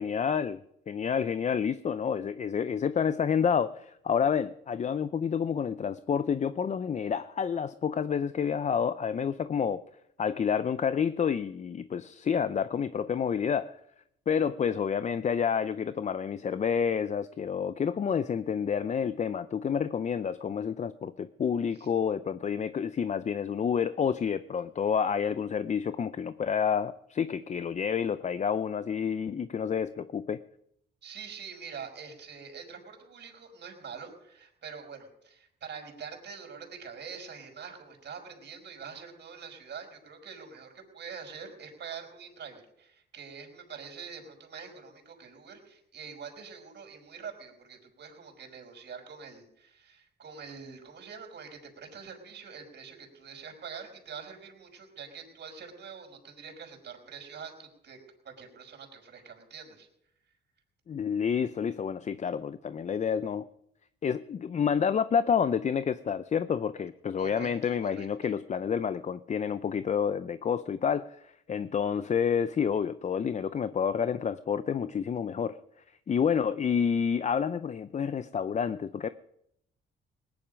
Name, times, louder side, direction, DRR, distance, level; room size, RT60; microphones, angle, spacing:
voice 1, 0.0-9.8 10.2-13.7 14.3-30.4 60.9-63.5 64.0-75.6 76.1-79.1, left 7 dB, 35° left, 14 dB, 0.6 m, -29 dB
voice 2, 31.0-58.0 58.2-59.9 67.2-68.1, right 6 dB, 60° right, 2 dB, 4.9 m, -45 dB
19.5 x 10.5 x 5.1 m, 0.77 s
cardioid pair, 90°, 20 cm